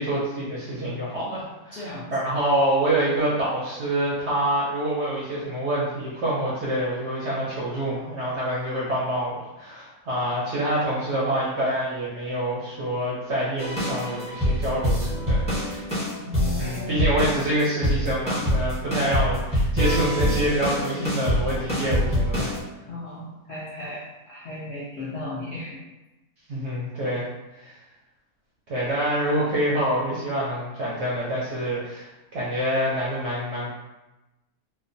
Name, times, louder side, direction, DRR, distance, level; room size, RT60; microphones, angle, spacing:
voice 1, 0.0-15.8 16.6-22.5 26.5-27.2 27.5-27.8 28.7-32.1 32.3-33.7, right 1 dB, 65° right, -7 dB, 0.7 m, -26 dB
voice 2, 1.7-2.1 16.1-17.1 20.9-21.0 22.9-25.8, left 2 dB, 65° left, -8 dB, 0.6 m, -35 dB
sound 1, 13.6-22.6, equal, 5° left, 0.7 m, -25 dB
2.8 x 2.1 x 2.6 m, 1.0 s
omnidirectional pair, 1.7 m